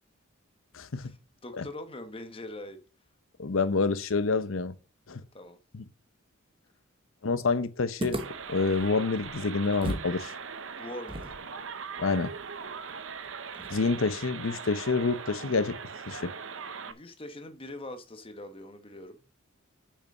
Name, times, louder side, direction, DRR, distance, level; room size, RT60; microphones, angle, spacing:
voice 1, 1.4-2.8 5.3-5.6 10.8-11.3 16.8-19.4, left 1 dB, 25° left, 1.0 m, -42 dB
voice 2, 3.4-4.7 5.1-5.2 5.7-5.8 7.2-8.2 8.5-10.3 12.0-12.3 13.7-15.8 16.1-16.3, left 4 dB, 75° left, 0.8 m, -27 dB
sound 1, 8.0-10.2 10.4-10.5 11.1-14.2, right 1 dB, 25° right, 1.1 m, -39 dB
sound 2, 8.2-16.9, right 6 dB, 70° right, 0.8 m, -40 dB
6.6 x 5.9 x 6.5 m
head